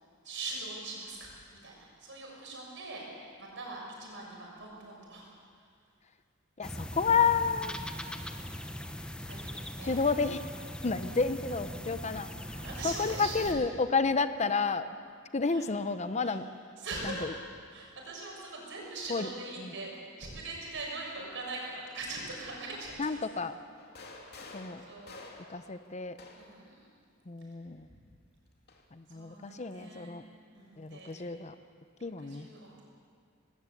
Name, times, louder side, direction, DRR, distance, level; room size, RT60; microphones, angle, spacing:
voice 1, 0.2-1.3 1.6-5.3 9.2-10.0 12.5-13.6 15.4-15.6 16.2-16.4 16.8-17.2 17.7-23.2 24.1-24.4 24.8-25.2 26.3-26.9 27.4-27.6 29.1-30.2 30.5-31.2 32.0-32.9, right 3 dB, 65° right, -2 dB, 6.6 m, -42 dB
voice 2, 6.6-7.8 9.8-10.4 10.8-15.0 15.3-16.4 17.0-17.3 19.1-19.3 19.6-19.7 23.0-23.5 24.5-24.8 25.5-26.2 27.3-27.9 28.9-30.2 30.8-31.5 32.0-32.5, left 5 dB, 35° left, 11 dB, 0.7 m, -30 dB
sound 1, 6.6-13.5, equal, 5° left, 1.0 m, -41 dB
sound 2, 23.8-26.7 27.8-28.9, left 3 dB, 50° left, 2.6 m, -50 dB
19.5 x 18.5 x 8.3 m, 2.2 s
head